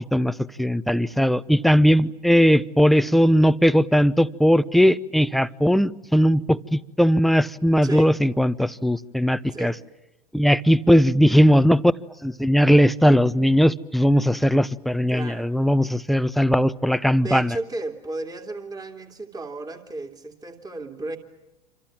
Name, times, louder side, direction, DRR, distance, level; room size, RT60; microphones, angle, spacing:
voice 1, 0.1-9.7 10.3-11.9 12.2-17.6, equal, ahead, 0.9 m, -19 dB
voice 2, 7.8-8.2 9.5-9.8 15.1-15.5 17.2-21.2, right 2 dB, 20° right, 2.8 m, -34 dB
27.5 x 26.5 x 7.4 m
hypercardioid pair, 90°, 21 cm